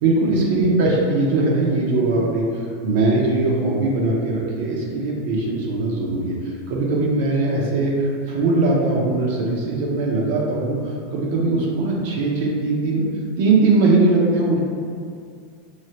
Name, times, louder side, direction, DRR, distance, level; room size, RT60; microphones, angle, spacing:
voice 1, 0.0-2.4 2.8-6.3 6.7-10.8 11.1-13.1 13.4-14.6, right 2 dB, 65° right, -3 dB, 0.5 m, -20 dB
3.2 x 2.3 x 2.8 m, 2.3 s
supercardioid pair, 135°, 0 cm